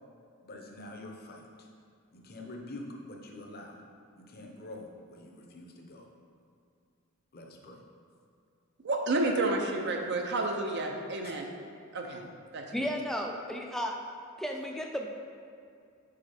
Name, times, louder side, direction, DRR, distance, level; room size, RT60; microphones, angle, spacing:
voice 1, 0.4-1.7 2.1-3.8 4.2-6.1 7.3-7.8 11.2-11.4, left 1 dB, 45° left, 1 dB, 0.7 m, -46 dB
voice 2, 8.8-11.4 11.9-12.2 12.5-12.9, right 2 dB, 55° right, 2 dB, 0.6 m, -30 dB
voice 3, 12.7-14.0 14.4-15.1, equal, ahead, 1 dB, 0.4 m, -33 dB
5.6 x 4.9 x 4.3 m, 2.4 s
head